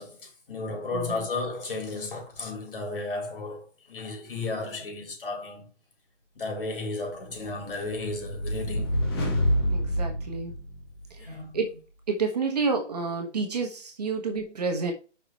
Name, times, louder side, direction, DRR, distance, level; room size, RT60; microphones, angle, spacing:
voice 1, 0.0-5.7 6.4-9.0 11.2-11.6, left 3 dB, 50° left, 4.1 m, -34 dB
voice 2, 0.9-1.3 9.7-10.5 11.1-11.8 12.1-14.9, right 4 dB, 35° right, 1.4 m, -29 dB
sound 1, 7.4-11.2, equal, 20° left, 1.8 m, -28 dB
6.0 x 5.8 x 4.4 m
hypercardioid pair, 170°, 36 cm